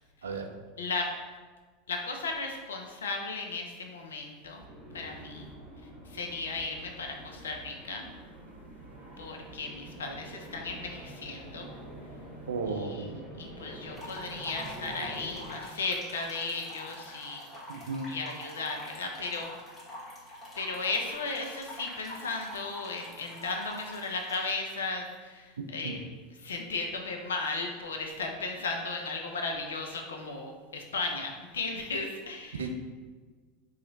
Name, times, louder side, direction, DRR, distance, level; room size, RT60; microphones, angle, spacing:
voice 1, 0.2-0.5 12.5-13.1 17.7-18.1 25.8-26.0 32.6-32.7, right 4 dB, 80° right, 5 dB, 0.3 m, -34 dB
voice 2, 0.8-1.1 1.9-4.6 4.9-5.5 6.1-8.1 9.2-11.7 12.7-17.4 18.1-19.5 20.6-26.1 26.4-32.7, left 3 dB, 80° left, 3 dB, 0.5 m, -35 dB
sound 1, 4.6-15.6, right 1 dB, 10° right, 1.3 m, -46 dB
sound 2, 13.9-24.5, left 1 dB, 30° left, 1.3 m, -45 dB
2.9 x 2.4 x 4.0 m, 1.5 s
hypercardioid pair, 85°, 0 cm